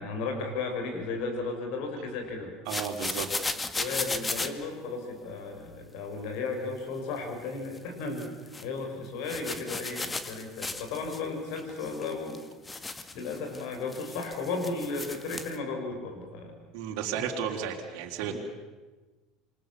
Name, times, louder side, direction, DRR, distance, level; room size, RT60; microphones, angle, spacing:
voice 1, 0.0-2.5 3.7-12.5 12.8-16.6 18.2-18.4, left 3 dB, 65° left, 4 dB, 6.6 m, -35 dB
sound 1, 2.7-4.5 7.6-7.8 8.2-8.6 9.2-11.2 11.5-15.6, left 3 dB, 20° left, 2.1 m, -36 dB
voice 2, 2.7-3.3 16.7-18.4, right 8 dB, 65° right, 1 dB, 3.8 m, -33 dB
27.5 x 24.5 x 7.3 m, 1.2 s
hypercardioid pair, 75°, 0 cm